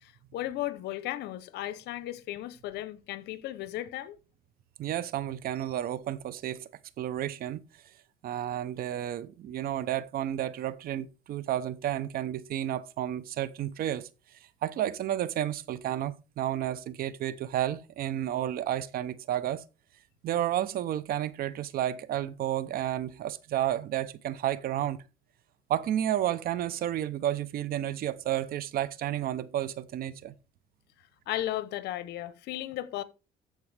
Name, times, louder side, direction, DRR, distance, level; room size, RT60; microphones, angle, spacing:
voice 1, 0.0-4.2 31.3-33.0, left 14 dB, 80° left, 0.8 m, -35 dB
voice 2, 4.8-6.7 7.0-7.6 8.2-14.1 14.6-19.6 20.2-25.0 25.7-30.3, right 12 dB, 60° right, 0.7 m, -31 dB
14.0 x 4.7 x 3.3 m
cardioid pair, 110°, 17 cm